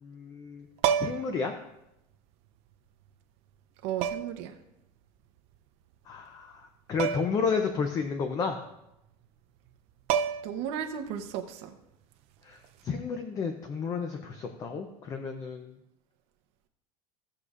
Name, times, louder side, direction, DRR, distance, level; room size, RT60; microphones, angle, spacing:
voice 1, 0.0-0.7 1.0-1.5 6.1-8.6 12.4-15.7, left 5 dB, 20° left, 6 dB, 0.5 m, -32 dB
sound 1, 0.8-1.4 2.7-2.8 4.0-4.5 7.0-7.4 7.7-7.8 9.7-9.8 10.1-10.7 12.6-12.9, right 8 dB, 40° right, 0.4 m, -29 dB
voice 2, 3.8-4.6 10.4-11.7, right 9 dB, 55° right, 5 dB, 0.8 m, -34 dB
17.0 x 6.7 x 2.4 m, 0.87 s
cardioid pair, 180°, 16 cm